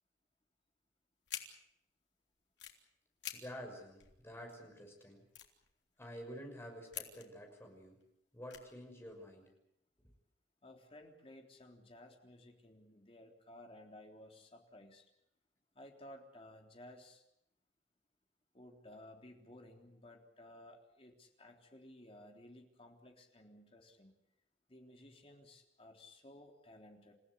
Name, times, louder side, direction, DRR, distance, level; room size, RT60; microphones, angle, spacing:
sound 1, 1.3-1.4 2.4-2.8 3.2-3.4 3.7-3.8 4.0-4.6 5.0-5.1 5.3-6.2 6.9-7.5 7.9-8.1 8.5-9.2, left 10 dB, 85° left, 3.3 m, -47 dB
voice 1, 3.3-5.2 6.0-8.0 8.3-9.5, equal, 15° left, 3 dB, 6.1 m, -49 dB
voice 2, 10.6-15.0 15.7-17.2 18.5-24.2 24.7-27.1, left 1 dB, 35° left, 2 dB, 3.6 m, -56 dB
29.0 x 16.0 x 8.4 m, 0.79 s
head